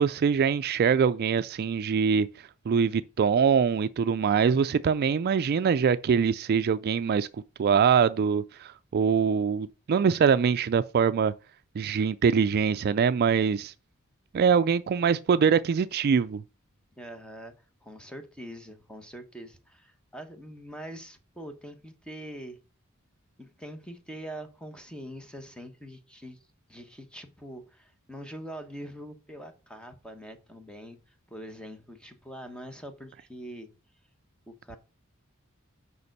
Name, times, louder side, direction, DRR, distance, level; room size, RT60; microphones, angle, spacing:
voice 1, 0.0-2.3 2.7-7.3 7.6-11.3 11.8-13.7 14.3-16.4, right 6 dB, 45° right, 0.3 m, -23 dB
voice 2, 17.0-17.5 17.8-22.6 23.4-26.4 26.7-31.0 31.3-33.7 34.5-34.8, equal, 5° left, 1.1 m, -43 dB
6.9 x 5.2 x 6.5 m
head